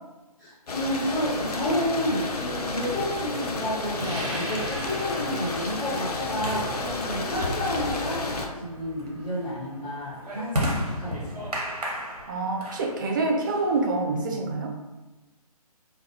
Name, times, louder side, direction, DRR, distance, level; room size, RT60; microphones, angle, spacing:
voice 1, 0.4-11.5, equal, 30° left, -11 dB, 1.1 m, -30 dB
sound 1, 0.7-8.5, left 3 dB, 80° left, 0.5 m, -31 dB
sound 2, 3.9-14.2, equal, 15° right, 1.1 m, -43 dB
sound 3, 6.4-14.1, equal, 80° right, 0.8 m, -35 dB
voice 2, 12.3-14.7, right 3 dB, 30° right, 0 dB, 0.4 m, -26 dB
2.3 x 2.2 x 2.7 m, 1.1 s
figure-of-eight pair, 140°, 20 cm